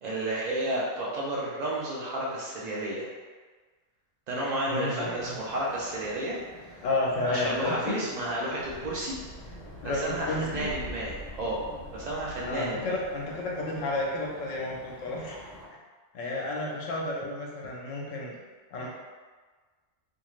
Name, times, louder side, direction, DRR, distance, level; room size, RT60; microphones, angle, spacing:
voice 1, 0.0-3.0 4.3-6.8 7.3-9.2 9.8-11.6 11.9-13.0, right 1 dB, 85° right, -5 dB, 0.3 m, -32 dB
voice 2, 4.7-5.4 6.8-8.0 9.8-10.7 12.5-15.4 16.1-18.3 18.7-18.9, left 2 dB, 85° left, -3 dB, 1.0 m, -31 dB
sound 1, 5.2-15.7, left 1 dB, 25° left, 0.4 m, -50 dB
sound 2, 8.6-13.8, left 1 dB, 60° left, 0.8 m, -45 dB
2.6 x 2.3 x 3.0 m, 1.4 s
omnidirectional pair, 1.3 m